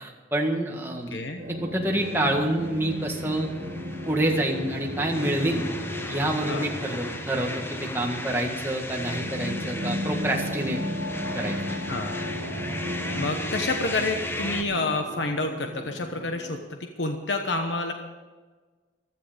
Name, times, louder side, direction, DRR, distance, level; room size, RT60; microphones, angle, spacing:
voice 1, 0.3-1.2 1.6-3.5 4.1-5.7 6.1-10.8 11.4-11.6, right 1 dB, 10° right, 0 dB, 1.7 m, -27 dB
voice 2, 1.1-1.4 6.5-6.6 11.9-12.2 13.1-17.9, left 2 dB, 75° left, 4 dB, 1.1 m, -29 dB
sound 1, 1.4-16.6, equal, 50° right, 1.8 m, -35 dB
sound 2, 2.0-14.6, left 1 dB, 10° left, 0.9 m, -36 dB
15.5 x 12.5 x 5.2 m, 1.4 s
head